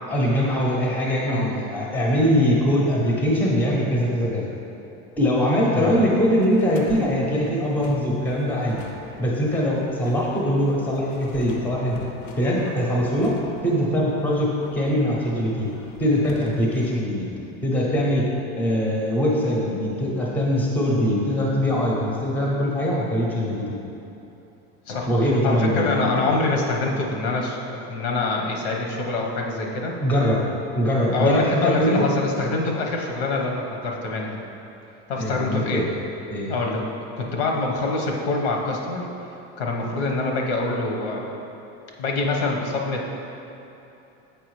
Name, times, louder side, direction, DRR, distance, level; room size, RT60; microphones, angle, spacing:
voice 1, 0.1-4.4 5.2-8.8 9.2-12.0 12.4-13.3 13.6-15.7 16.0-17.3 17.6-18.3 18.6-23.7 25.1-26.1 30.0-30.4 30.8-32.1 35.2-35.9 36.3-36.5, equal, 5° left, -3 dB, 0.6 m, -22 dB
sound 1, 6.4-17.0, left 3 dB, 45° left, 0.6 m, -41 dB
voice 2, 24.9-29.9 31.1-34.4 35.1-35.9 36.5-36.8 37.2-39.1 39.6-41.3 42.0-43.1, left 3 dB, 85° left, 0 dB, 1.1 m, -25 dB
7.2 x 4.7 x 3.1 m, 3.0 s
supercardioid pair, 155°, 31 cm